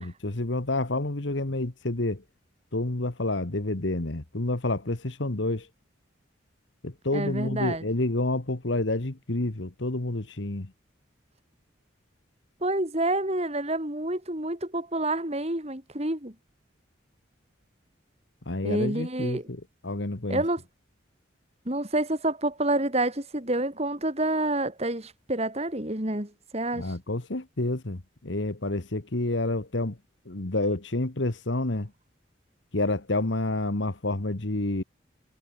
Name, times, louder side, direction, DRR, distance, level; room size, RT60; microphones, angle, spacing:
voice 1, 0.0-2.2 2.7-5.7 6.8-10.7 18.5-20.4 26.7-30.0 30.3-31.9 32.7-34.8, left 2 dB, 70° left, 1.6 m, -29 dB
voice 2, 7.1-7.8 12.6-16.3 18.6-19.4 20.3-20.6 21.7-26.9, right 1 dB, 35° right, 3.5 m, -28 dB
head